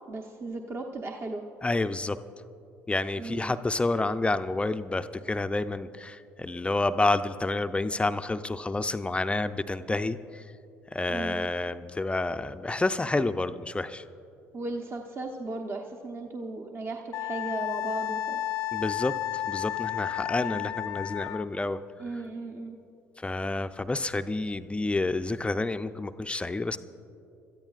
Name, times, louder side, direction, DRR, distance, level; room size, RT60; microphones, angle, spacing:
voice 1, 0.1-1.4 3.2-3.6 11.1-11.5 14.5-18.4 20.4-20.7 22.0-22.8, right 2 dB, 35° right, 3 dB, 0.9 m, -36 dB
voice 2, 1.6-2.2 2.9-10.4 10.9-14.0 18.7-21.8 23.2-26.8, left 2 dB, 15° left, 10 dB, 0.5 m, -29 dB
Wind instrument woodwind instrument, 17.1-21.5, left 13 dB, 65° left, 0.6 m, -32 dB
26.5 x 13.5 x 2.5 m, 2.7 s
hypercardioid pair, 60°, 7 cm